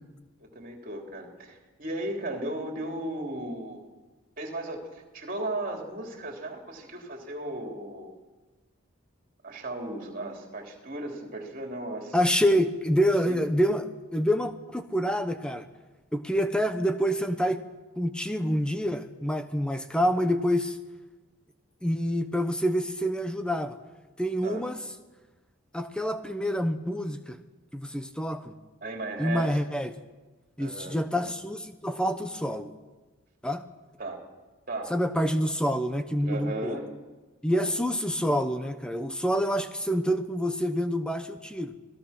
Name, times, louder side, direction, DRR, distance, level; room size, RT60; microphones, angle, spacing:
voice 1, 0.4-3.8 4.4-8.1 9.4-12.2 13.3-13.4 24.4-24.6 28.8-29.6 30.6-31.0 34.0-34.2 34.7-34.9 36.2-36.9 37.5-37.7, right 1 dB, 40° right, 2 dB, 3.4 m, -36 dB
voice 2, 12.1-15.7 16.1-17.6 18.0-20.8 21.8-23.8 24.2-24.8 25.7-27.4 27.7-28.5 29.2-29.9 30.6-32.7 33.4-33.6 34.9-36.8 37.4-41.7, equal, 5° left, 9 dB, 0.9 m, -27 dB
27.0 x 18.5 x 5.9 m, 1.2 s
head